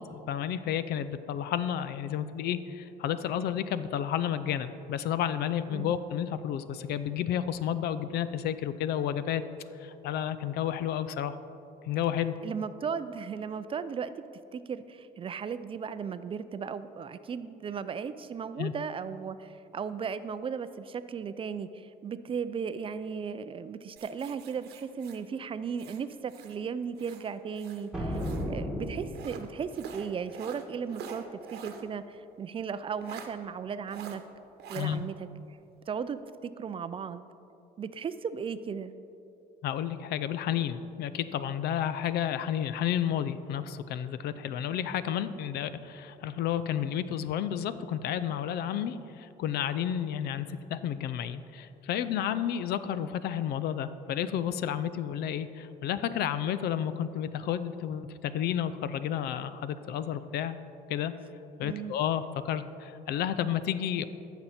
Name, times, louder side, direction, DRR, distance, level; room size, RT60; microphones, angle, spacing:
voice 1, 0.0-9.4 9.8-11.4 11.8-12.4 18.6-18.7 34.8-35.0 39.6-60.6 60.9-61.1 61.6-64.1, left 9 dB, 70° left, 13 dB, 0.5 m, -31 dB
voice 2, 12.4-14.2 14.5-28.2 28.5-31.2 31.5-34.2 34.7-35.3 35.9-37.2 37.8-38.9 61.6-61.9, right 6 dB, 30° right, 13 dB, 0.4 m, -36 dB
sound 1, 24.0-26.6 26.9-28.5 29.1-31.9 32.2-32.3 33.0-33.3 33.9-34.2 34.6-34.9, right 6 dB, 75° right, 1.0 m, -46 dB
sound 2, 27.9-29.7, equal, 5° right, 1.8 m, -34 dB
14.0 x 6.0 x 4.3 m, 2.7 s
cardioid pair, 110°, 17 cm